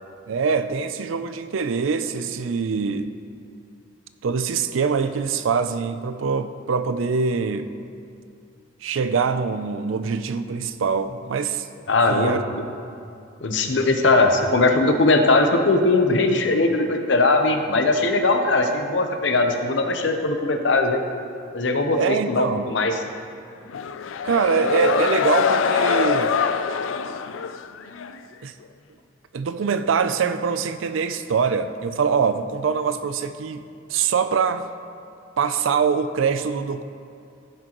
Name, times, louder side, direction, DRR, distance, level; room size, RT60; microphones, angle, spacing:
voice 1, 0.3-3.1 4.2-7.7 8.8-11.7 12.1-12.4 22.0-22.7 24.2-26.3 28.4-28.5 29.3-34.7 35.4-36.8, right 5 dB, 90° right, 11 dB, 0.4 m, -24 dB
voice 2, 11.9-12.6 13.4-21.0 21.5-23.0, left 2 dB, 65° left, 5 dB, 0.8 m, -20 dB
sound 1, 23.7-28.2, left 6 dB, 90° left, 0.4 m, -23 dB
15.0 x 6.3 x 3.0 m, 2.5 s
head